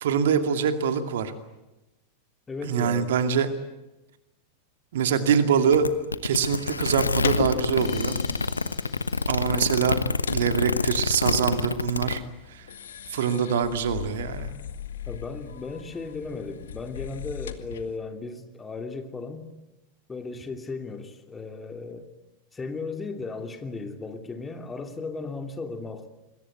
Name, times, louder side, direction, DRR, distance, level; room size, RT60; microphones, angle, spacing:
voice 1, 0.0-1.3 2.6-3.5 4.9-5.9 6.2-8.2 9.3-10.0 10.3-12.2 13.1-14.5, right 7 dB, 60° right, 9 dB, 2.3 m, -24 dB
voice 2, 2.5-3.2 15.1-19.5 20.1-22.1 22.5-26.1, left 4 dB, 15° left, 6 dB, 2.9 m, -36 dB
sound 1, 5.7-12.2, left 3 dB, 80° left, 1.1 m, -27 dB
sound 2, 6.6-18.0, left 8 dB, 65° left, 1.8 m, -38 dB
sound 3, 7.8-11.1, left 6 dB, 40° left, 7.0 m, -48 dB
27.0 x 22.0 x 9.4 m, 0.99 s
figure-of-eight pair, 90°, 0 cm